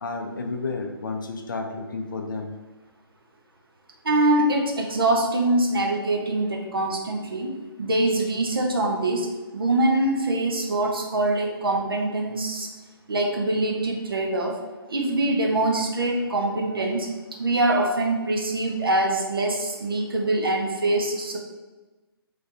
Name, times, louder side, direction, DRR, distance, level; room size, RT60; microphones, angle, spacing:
voice 1, 0.0-2.5, left 3 dB, 55° left, 4 dB, 0.5 m, -31 dB
voice 2, 4.0-7.5 7.8-9.3 9.5-12.7 13.1-14.6 14.9-17.1 17.4-21.4, right 2 dB, 65° right, 0 dB, 0.7 m, -24 dB
3.4 x 3.0 x 2.7 m, 1.2 s
figure-of-eight pair, 135°, 13 cm